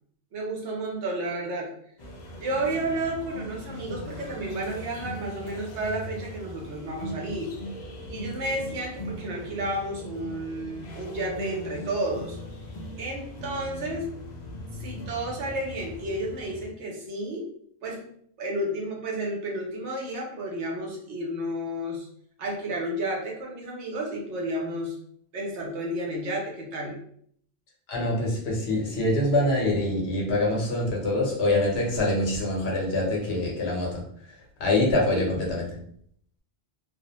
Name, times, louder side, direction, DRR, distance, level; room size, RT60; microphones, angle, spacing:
voice 1, 0.3-1.7 2.3-7.5 8.1-12.4 13.0-14.0 14.8-17.4 17.8-18.0 18.4-22.1 22.4-24.9 25.3-27.0 35.1-35.4, right 1 dB, 80° right, -1 dB, 1.0 m, -31 dB
sound 1, 2.0-16.7, left 1 dB, 55° left, 0.5 m, -39 dB
voice 2, 27.9-34.0 34.6-35.7, left 1 dB, 70° left, -2 dB, 1.0 m, -25 dB
2.5 x 2.1 x 2.8 m, 0.64 s
omnidirectional pair, 1.1 m